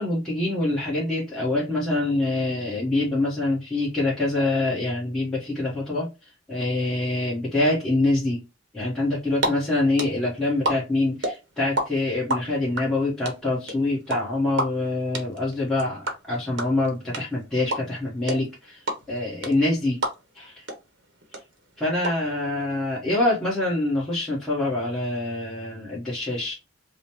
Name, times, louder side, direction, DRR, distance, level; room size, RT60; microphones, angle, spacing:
voice 1, 0.0-6.1 6.5-8.4 8.7-20.0 20.3-20.6 21.8-26.6, left 2 dB, ahead, -8 dB, 1.0 m, -25 dB
sound 1, 9.1-9.5 9.7-11.8 12.1-20.4 20.7-20.8 21.0-22.1, right 1 dB, 55° right, 0.9 m, -27 dB
5.0 x 2.1 x 2.9 m, 0.27 s
head